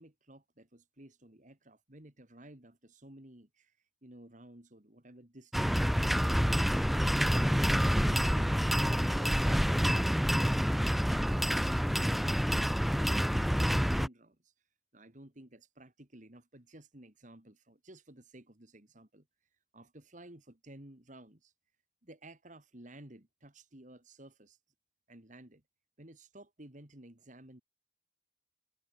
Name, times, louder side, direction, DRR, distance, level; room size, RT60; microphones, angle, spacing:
voice 1, 0.0-7.1 8.0-14.5 14.9-19.3 19.7-21.5 22.0-24.6 25.1-25.6 26.0-27.6, right 1 dB, 40° right, 2.5 m, -54 dB
sound 1, 5.5-14.1, equal, ahead, 0.5 m, -28 dB
head